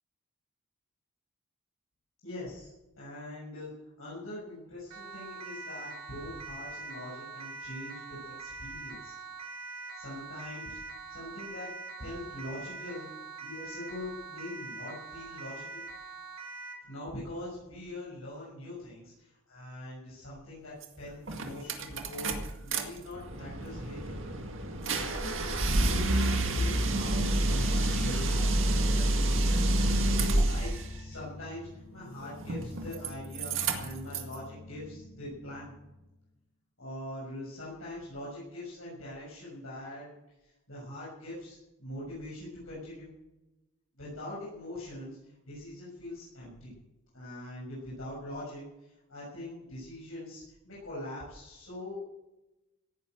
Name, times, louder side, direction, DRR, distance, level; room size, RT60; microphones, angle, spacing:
voice 1, 2.2-3.7 4.0-9.1 9.9-10.8 11.1-11.7 12.0-13.1 13.4-15.8 16.8-24.2 25.0-28.3 28.9-35.7 36.8-43.1 44.0-46.8 47.1-52.0, left 1 dB, 75° left, -7 dB, 6.5 m, -43 dB
Siren, 4.9-16.9, right 3 dB, 85° right, 3.0 m, -43 dB
sound 1, 20.8-20.9 21.3-22.8 23.2-30.9 32.4-33.1 33.4-34.3, right 1 dB, 60° right, 2.0 m, -28 dB
sound 2, 27.3-36.2, left 2 dB, 5° left, 4.4 m, -47 dB
17.0 x 9.9 x 7.9 m, 1.0 s
head